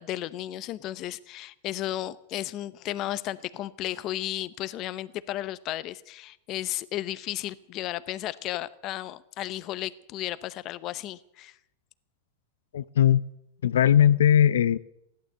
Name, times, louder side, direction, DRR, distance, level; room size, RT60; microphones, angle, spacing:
voice 1, 0.0-11.6, left 14 dB, 40° left, 0.7 m, -34 dB
voice 2, 12.7-13.2 13.6-14.8, left 10 dB, 90° left, 0.5 m, -19 dB
15.5 x 11.5 x 7.8 m
supercardioid pair, 140°, 0 cm